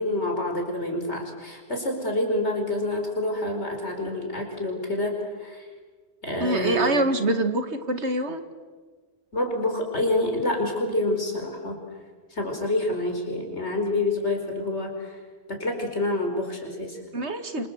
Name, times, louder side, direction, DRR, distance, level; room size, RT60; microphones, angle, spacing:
voice 1, 0.0-5.7 6.2-7.1 9.3-11.8 12.3-15.2 15.5-17.0, left 2 dB, 80° left, 3 dB, 5.4 m, -27 dB
voice 2, 6.4-8.4 17.1-17.7, right 1 dB, 75° right, 8 dB, 2.3 m, -25 dB
27.0 x 26.5 x 8.1 m, 1.4 s
omnidirectional pair, 1.1 m